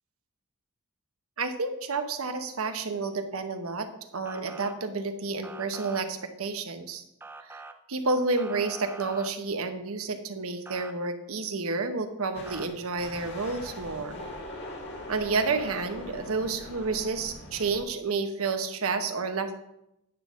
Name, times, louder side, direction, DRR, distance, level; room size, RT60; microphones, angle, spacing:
voice 1, 1.4-7.0 7.4-7.6 7.9-14.2 15.1-19.6, right 3 dB, 70° right, 8 dB, 0.9 m, -30 dB
Motor vehicle (road) / Siren, 4.3-4.7 5.4-6.0 7.2-7.7 8.4-9.3 10.7-10.9 12.5-12.7, right 3 dB, 10° right, 0.4 m, -44 dB
sound 1, 12.3-17.8, left 1 dB, 50° left, 1.7 m, -41 dB
9.6 x 3.6 x 7.1 m, 0.84 s
head